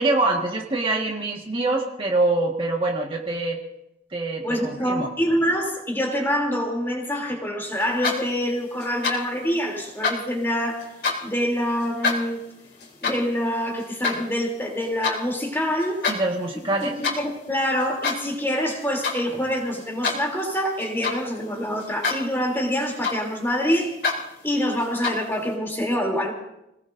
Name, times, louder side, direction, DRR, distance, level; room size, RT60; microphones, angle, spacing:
voice 1, 0.0-3.6 4.1-5.1 16.1-17.0, right 2 dB, 30° right, -1 dB, 1.8 m, -24 dB
voice 2, 4.4-10.8 11.2-12.4 13.0-16.0 16.8-23.9 24.4-26.3, equal, 15° left, 0 dB, 3.3 m, -25 dB
sound 1, 7.8-8.5 8.8-9.4 9.8-11.4 11.8-15.2 15.6-16.2 16.5-17.3 17.8-18.4 18.6-19.2 19.6-21.4 21.8-22.3 22.6-23.5 23.8-24.2 24.8-25.4, left 4 dB, 60° left, 3.7 m, -28 dB
28.0 x 19.0 x 2.7 m, 0.84 s
head